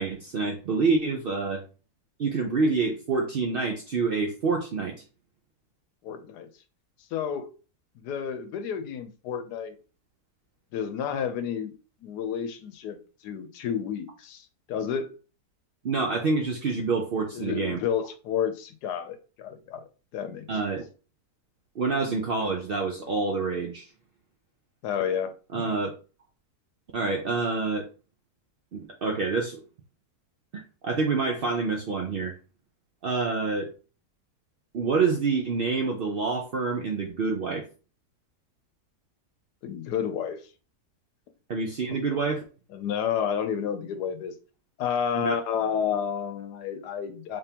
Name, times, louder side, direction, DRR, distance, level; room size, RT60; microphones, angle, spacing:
voice 1, 0.0-1.6 2.2-4.9 15.8-17.8 20.5-20.8 21.8-23.9 25.5-25.9 26.9-27.9 28.7-29.6 30.5-32.3 33.0-33.7 34.7-37.6 41.5-42.4 45.1-45.4, right 4 dB, 80° right, 0.5 m, -27 dB
voice 2, 6.0-6.5 7.1-7.5 8.0-9.8 10.7-11.7 12.0-15.1 17.3-19.8 20.1-20.5 24.8-25.7 39.6-40.4 42.7-44.3 44.8-47.4, left 8 dB, 80° left, 1.2 m, -30 dB
3.6 x 3.5 x 2.8 m
omnidirectional pair, 1.7 m